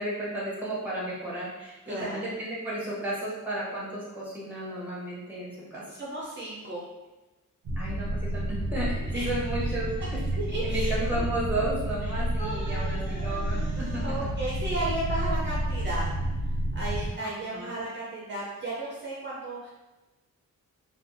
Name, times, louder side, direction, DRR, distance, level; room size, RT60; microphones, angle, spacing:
voice 1, 0.0-5.8 7.8-10.2 10.6-14.0 17.2-17.7, right 1 dB, 5° right, -6 dB, 0.8 m, -33 dB
voice 2, 1.6-2.2 5.9-6.8 9.1-9.3 10.0-10.1 10.5-11.2 12.4-16.1 16.7-19.7, right 1 dB, 35° right, -7 dB, 0.5 m, -35 dB
sound 1, 7.6-17.1, right 1 dB, 85° right, 0.6 m, -30 dB
2.5 x 2.3 x 2.6 m, 1.1 s
wide cardioid pair, 140°, 32 cm